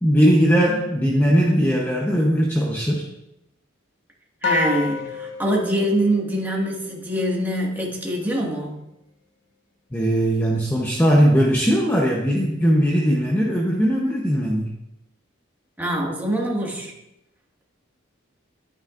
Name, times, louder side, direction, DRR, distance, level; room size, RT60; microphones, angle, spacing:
voice 1, 0.0-3.0 9.9-14.7, equal, 10° left, -2 dB, 0.8 m, -19 dB
sound 1, 4.4-7.0, left 5 dB, 65° left, 0.9 m, -29 dB
voice 2, 4.4-8.8 15.8-16.9, right 1 dB, 10° right, -3 dB, 1.8 m, -24 dB
11.0 x 9.4 x 2.5 m, 0.87 s
head